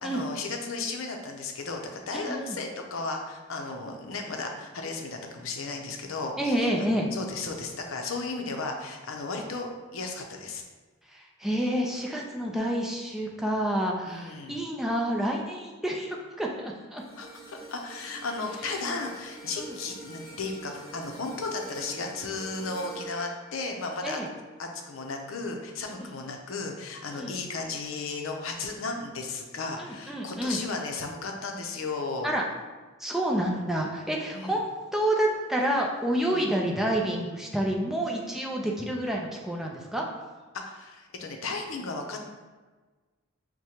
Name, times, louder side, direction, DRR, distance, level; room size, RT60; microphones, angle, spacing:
voice 1, 0.0-10.6 14.1-14.6 17.2-24.2 24.6-32.3 34.3-34.6 36.3-36.5 40.5-42.2, left 3 dB, 85° left, 3 dB, 0.6 m, -35 dB
voice 2, 2.1-2.6 6.4-7.1 11.1-17.0 19.6-19.8 24.0-24.3 25.9-26.1 27.1-27.4 29.8-30.6 32.2-32.4 33.0-40.0, right 1 dB, ahead, -1 dB, 0.4 m, -29 dB
sound 1, 17.0-25.3 25.8-26.0, right 1 dB, 15° left, 1.0 m, -46 dB
6.2 x 2.1 x 2.8 m, 1.3 s
head